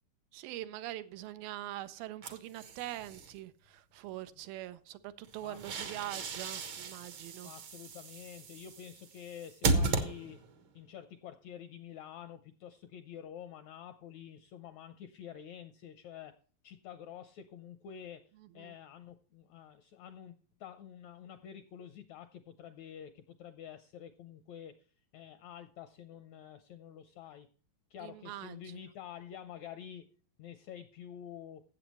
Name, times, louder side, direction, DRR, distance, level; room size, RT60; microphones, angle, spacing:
voice 1, 0.3-7.5 18.4-18.8 28.0-28.8, right 14 dB, 90° right, 2.6 m, -43 dB
sound 1, 2.2-3.3 5.2-10.6, right 3 dB, 65° right, 1.1 m, -36 dB
voice 2, 7.4-10.4 10.7-16.3 16.6-18.2 18.5-24.8 25.1-27.5 27.9-30.1 30.4-31.6, left 9 dB, 80° left, 1.6 m, -48 dB
15.5 x 7.8 x 3.0 m
omnidirectional pair, 4.1 m